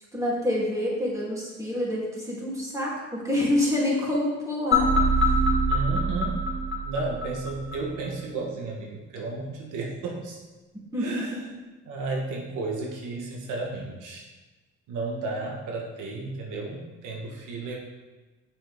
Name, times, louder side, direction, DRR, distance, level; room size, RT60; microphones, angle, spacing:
voice 1, 0.1-4.9 10.9-11.4, left 1 dB, 10° right, -5 dB, 2.7 m, -27 dB
sound 1, 4.7-7.8, equal, 40° left, 2.0 m, -24 dB
voice 2, 5.7-6.4 6.8-10.4 11.0-11.4 11.9-14.2 14.9-17.8, right 3 dB, 90° right, -1 dB, 1.4 m, -33 dB
7.8 x 6.4 x 3.5 m, 1.2 s
cardioid pair, 90°, 30 cm